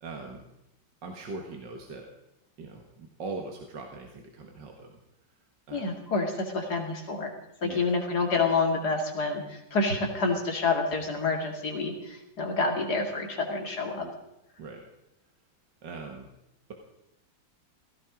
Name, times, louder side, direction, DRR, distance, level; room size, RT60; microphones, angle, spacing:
voice 1, 0.0-0.4 1.0-2.1 2.6-5.0 5.7-5.9 7.6-7.8 14.0-14.1 14.6-14.8 15.8-16.3, right 3 dB, 75° right, 2 dB, 2.4 m, -40 dB
voice 2, 5.7-7.3 7.6-14.1, left 3 dB, 60° left, 3 dB, 2.9 m, -28 dB
17.0 x 15.5 x 5.1 m, 0.87 s
omnidirectional pair, 2.0 m